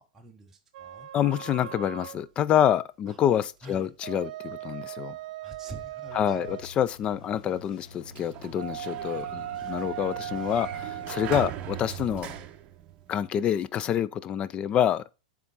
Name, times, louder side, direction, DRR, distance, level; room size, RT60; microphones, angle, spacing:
voice 1, 0.0-1.1 3.1-3.2 3.6-3.9 5.4-6.7, right 1 dB, 10° right, 1.0 m, -46 dB
sound 1, 0.7-2.2 3.8-6.7 8.5-11.6, right 12 dB, 65° right, 0.5 m, -38 dB
voice 2, 1.1-5.2 6.1-12.3 13.1-15.1, left 10 dB, 25° left, 0.4 m, -27 dB
sound 2, 6.0-12.5, left 3 dB, 80° left, 1.5 m, -49 dB
Sliding door, 7.9-13.5, right 11 dB, 30° right, 0.8 m, -40 dB
7.1 x 3.8 x 5.4 m
supercardioid pair, 140°, 4 cm